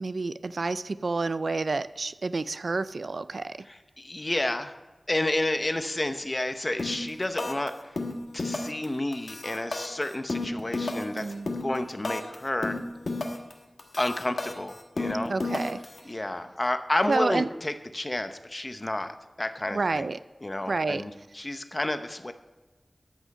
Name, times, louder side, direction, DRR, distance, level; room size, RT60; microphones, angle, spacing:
voice 1, 0.0-3.6 11.1-11.5 15.3-15.8 17.1-17.5 19.7-20.2 20.7-21.1, right 3 dB, 80° right, 14 dB, 0.3 m, -29 dB
voice 2, 3.7-4.7 5.1-7.9 8.3-11.3 11.6-12.8 14.0-15.3 16.0-20.1 20.4-22.3, left 1 dB, 30° left, 9 dB, 0.8 m, -30 dB
sound 1, 6.8-7.1 7.4-7.7 8.0-8.9 9.1-12.4 12.6-13.5 13.8-16.0, left 2 dB, 75° left, 1.3 m, -32 dB
13.0 x 6.2 x 5.4 m, 1.2 s
wide cardioid pair, 75°, 0 cm